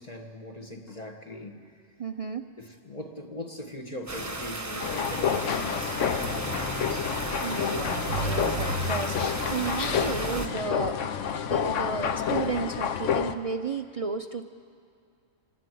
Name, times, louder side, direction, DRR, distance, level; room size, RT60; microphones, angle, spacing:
voice 1, 0.0-1.7 2.6-7.2, left 1 dB, 30° left, 3 dB, 1.6 m, -41 dB
voice 2, 2.0-2.4 7.4-11.1 11.5-14.5, right 4 dB, 45° right, 7 dB, 0.4 m, -33 dB
sound 1, 4.1-10.5, right 2 dB, 15° right, 1.2 m, -33 dB
sound 2, 4.8-13.3, left 8 dB, 70° left, 1.1 m, -29 dB
26.5 x 12.0 x 9.2 m, 2.4 s
omnidirectional pair, 1.4 m